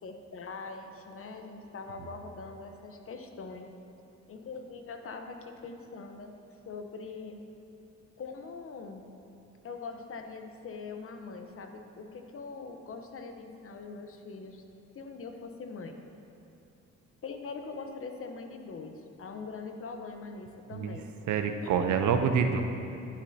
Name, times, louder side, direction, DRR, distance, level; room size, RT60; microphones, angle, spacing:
voice 1, 0.0-3.7 4.3-6.3 6.7-7.4 8.2-9.0 9.6-14.6 14.9-16.0 17.2-18.9 19.2-21.1 21.6-21.8, left 4 dB, 45° left, 5 dB, 0.9 m, -42 dB
voice 2, 21.3-22.6, right 6 dB, 75° right, 6 dB, 0.7 m, -26 dB
11.5 x 8.4 x 2.8 m, 2.9 s
cardioid pair, 90°, 30 cm